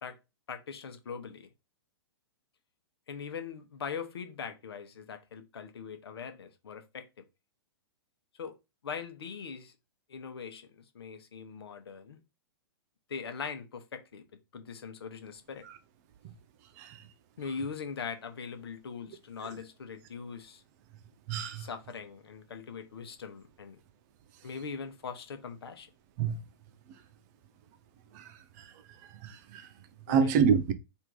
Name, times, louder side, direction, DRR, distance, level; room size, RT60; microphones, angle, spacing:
voice 1, 0.5-1.5 3.1-7.1 8.4-8.5 8.8-9.7 10.1-12.2 13.1-14.2 14.5-15.6 17.4-20.6 21.6-23.8 24.4-25.9 30.1-30.3, left 6 dB, 70° left, 1.0 m, -41 dB
voice 2, 21.3-21.7 26.2-26.4 28.1-28.2 29.2-29.7 30.1-30.7, right 7 dB, 40° right, 0.7 m, -26 dB
3.6 x 2.7 x 4.6 m
figure-of-eight pair, 110°, 13 cm